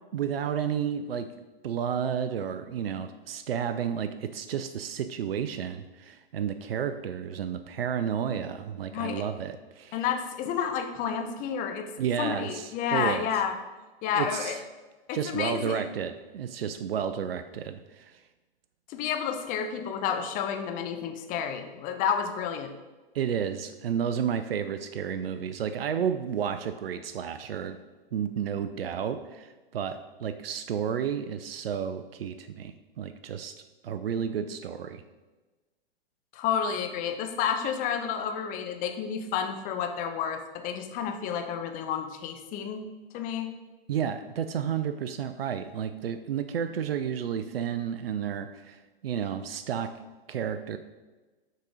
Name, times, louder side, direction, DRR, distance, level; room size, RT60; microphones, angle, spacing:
voice 1, 0.1-1.3 1.6-10.0 12.0-13.3 14.1-14.6 15.1-18.2 23.1-27.8 28.1-35.0 43.9-50.0 50.3-50.8, right 8 dB, 80° right, 10 dB, 0.5 m, -31 dB
voice 2, 8.9-9.2 9.9-11.9 12.2-13.5 14.0-14.6 15.1-15.9 18.9-22.7 36.3-42.8 43.1-43.6, left 7 dB, 30° left, 6 dB, 0.7 m, -30 dB
6.4 x 4.0 x 4.9 m, 1.2 s
hypercardioid pair, 115°, 29 cm